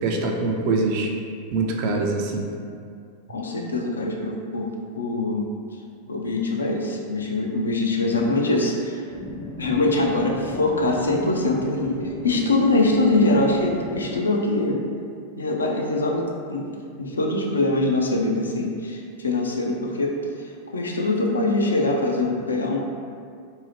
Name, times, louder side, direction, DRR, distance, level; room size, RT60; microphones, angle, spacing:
voice 1, 0.0-1.1 1.5-2.5, right 3 dB, 55° right, 1 dB, 0.4 m, -24 dB
voice 2, 3.3-4.7 5.0-5.5 6.1-9.0 9.6-14.8 15.4-16.7 17.0-22.8, left 2 dB, 85° left, 0 dB, 0.3 m, -23 dB
sound 1, 9.1-14.2, left 1 dB, 40° left, 0.5 m, -36 dB
2.6 x 2.0 x 3.2 m, 2.3 s
hypercardioid pair, 95°, 0 cm